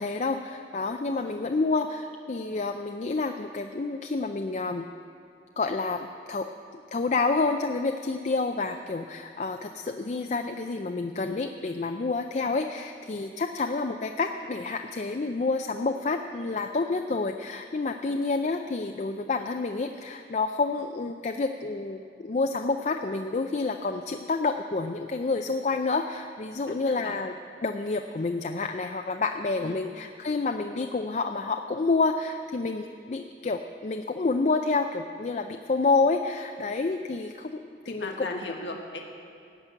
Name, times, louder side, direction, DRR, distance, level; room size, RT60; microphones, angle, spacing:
voice 1, 0.0-4.9 5.6-6.5 6.7-27.3 27.6-38.3, left 3 dB, 40° left, 5 dB, 0.4 m, -29 dB
voice 2, 26.6-27.1 29.6-29.8 37.9-39.0, left 2 dB, 85° left, 1 dB, 1.5 m, -38 dB
17.0 x 6.1 x 9.0 m, 2.5 s
head